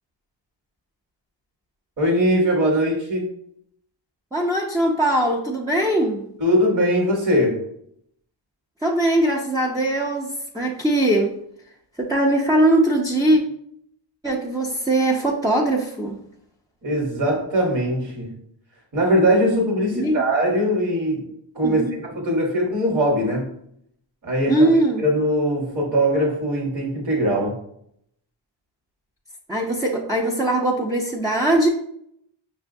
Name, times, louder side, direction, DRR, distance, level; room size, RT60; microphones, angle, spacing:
voice 1, 2.0-3.3 6.4-7.6 16.8-18.4 18.9-21.3 21.5-23.5 24.2-24.7 25.0-27.6, equal, 40° right, -1 dB, 1.2 m, -21 dB
voice 2, 4.3-6.2 8.8-11.4 12.0-13.4 14.2-16.2 19.9-20.2 21.6-22.0 24.5-25.0 29.5-31.7, right 1 dB, 10° right, -3 dB, 0.6 m, -21 dB
5.6 x 2.2 x 2.6 m, 0.71 s
cardioid pair, 55°, 48 cm